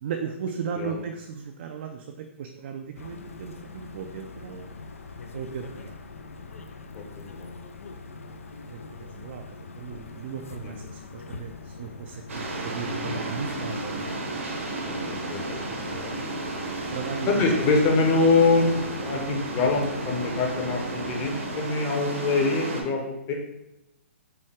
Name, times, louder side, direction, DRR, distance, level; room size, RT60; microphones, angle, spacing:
voice 1, 0.0-4.7 5.3-5.9 8.7-9.4 9.8-14.0 16.9-17.3 17.7-17.8, right 7 dB, 50° right, 4 dB, 0.4 m, -36 dB
sound 1, 3.0-21.6, left 4 dB, 80° left, 0.5 m, -42 dB
voice 2, 6.9-7.6 10.6-10.7 12.8-13.2 14.8-16.1 17.3-23.3, left 3 dB, 30° left, 1 dB, 0.9 m, -25 dB
sound 2, 12.3-22.8, right 2 dB, 80° right, 1.0 m, -33 dB
5.5 x 2.3 x 3.4 m, 0.91 s
hypercardioid pair, 130°, 7 cm